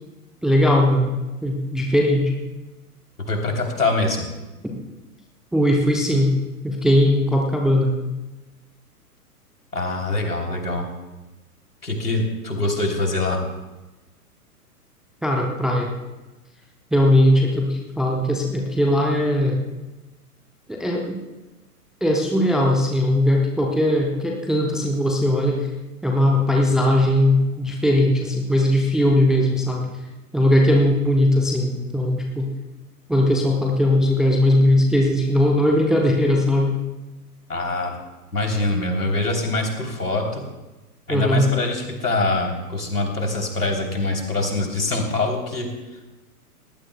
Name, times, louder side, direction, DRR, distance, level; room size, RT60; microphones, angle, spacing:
voice 1, 0.4-1.1 1.4-2.3 4.6-4.7 5.5-6.3 6.6-7.9 15.2-15.9 16.9-19.6 20.7-21.2 22.0-25.7 26.0-29.9 30.3-32.5 33.1-36.8 41.1-41.5, left 1 dB, ahead, 0 dB, 0.6 m, -19 dB
voice 2, 3.3-4.3 9.7-10.9 11.8-13.4 37.5-37.9 38.3-40.4 41.1-45.7, left 2 dB, 80° left, 2 dB, 3.4 m, -24 dB
20.0 x 18.0 x 2.2 m, 1.1 s
figure-of-eight pair, 110°, 46 cm